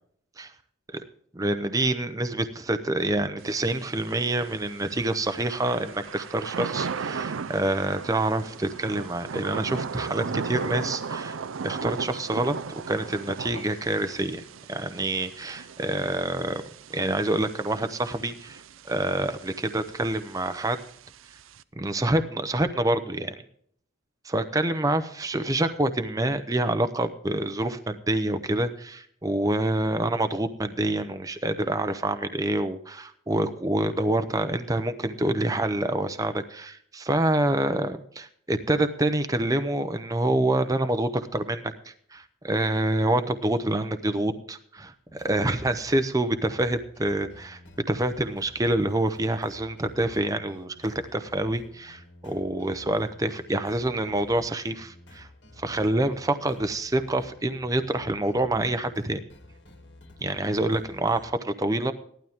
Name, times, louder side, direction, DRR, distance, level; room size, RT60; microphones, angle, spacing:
voice 1, 1.3-12.6 12.9-14.4 14.7-16.6 16.9-20.8 21.8-23.3 24.2-47.6 47.9-55.3 55.6-59.2 60.2-61.9, right 1 dB, 15° right, 8 dB, 0.7 m, -27 dB
Thunder / Rain, 3.4-21.6, right 5 dB, 80° right, 0.6 m, -37 dB
sound 1, 45.1-61.3, left 1 dB, 60° left, 2.3 m, -51 dB
15.5 x 12.0 x 3.6 m, 0.63 s
head